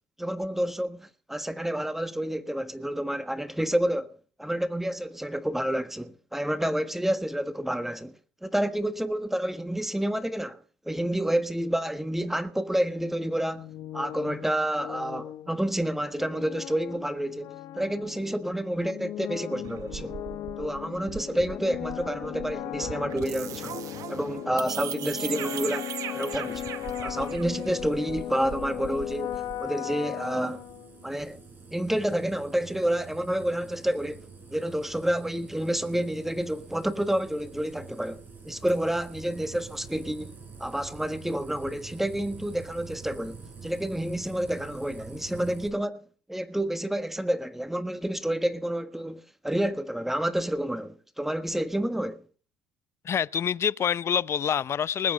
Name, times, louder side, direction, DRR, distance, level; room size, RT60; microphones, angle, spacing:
voice 1, 0.2-8.2 8.4-13.7 13.9-20.2 20.6-23.8 24.1-26.6 27.0-30.6 31.0-31.4 31.7-40.3 40.6-52.2, right 1 dB, 5° right, 1.5 m, -29 dB
sound 1, 13.5-31.2, left 12 dB, 60° left, 0.9 m, -37 dB
sound 2, 19.6-29.7, right 11 dB, 60° right, 1.1 m, -39 dB
sound 3, 26.4-45.7, right 5 dB, 30° right, 6.6 m, -47 dB
voice 2, 53.0-55.1, left 8 dB, 40° left, 0.6 m, -26 dB
20.0 x 8.4 x 5.3 m
supercardioid pair, 85°, 7 cm